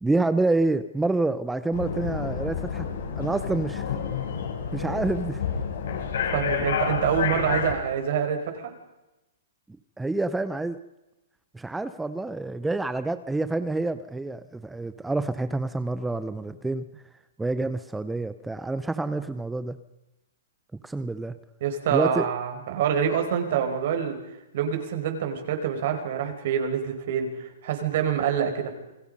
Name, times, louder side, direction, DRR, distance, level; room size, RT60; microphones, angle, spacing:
voice 1, 0.0-2.9 3.2-3.9 4.7-5.4 10.0-10.8 11.5-16.9 17.4-19.8 20.8-21.4 21.9-22.3, right 2 dB, 5° right, 12 dB, 0.7 m, -27 dB
sound 1, 1.7-7.7, left 6 dB, 75° left, 7.9 m, -29 dB
voice 2, 6.3-8.7 21.6-24.2 24.5-28.7, right 8 dB, 50° right, 5 dB, 4.9 m, -26 dB
28.5 x 20.5 x 5.4 m, 0.96 s
hypercardioid pair, 160°, 0 cm